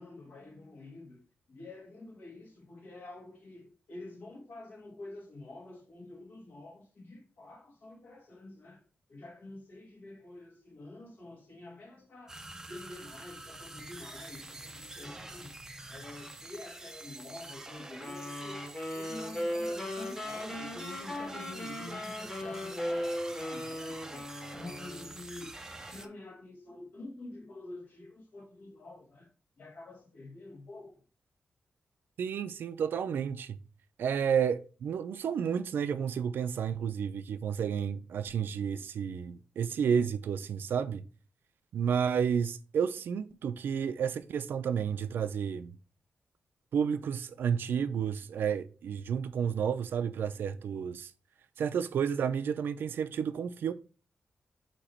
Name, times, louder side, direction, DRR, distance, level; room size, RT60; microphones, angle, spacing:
voice 1, 0.0-15.6 15.9-18.7 18.9-24.3 24.6-29.3 29.6-31.0, left 2 dB, 55° left, 1.9 m, -48 dB
sound 1, 12.3-26.1, right 2 dB, 15° right, 0.5 m, -46 dB
sound 2, 18.0-25.2, left 1 dB, 15° left, 1.6 m, -37 dB
voice 2, 32.2-33.6 34.0-41.1 41.7-45.7 46.7-51.1 51.6-53.7, right 7 dB, 90° right, 0.5 m, -31 dB
8.5 x 3.0 x 4.4 m
wide cardioid pair, 175°, 4 cm